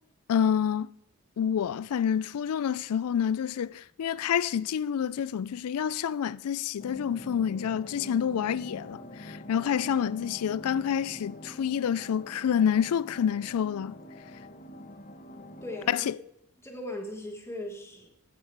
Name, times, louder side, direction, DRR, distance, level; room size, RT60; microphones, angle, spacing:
voice 1, 0.3-0.9 1.4-13.9 15.9-16.2, left 8 dB, 90° left, 0.4 m, -28 dB
sound 1, 6.8-15.9, equal, 35° left, 0.9 m, -45 dB
voice 2, 15.6-16.1 16.6-18.1, left 1 dB, 10° left, 1.3 m, -38 dB
14.5 x 8.1 x 4.6 m
head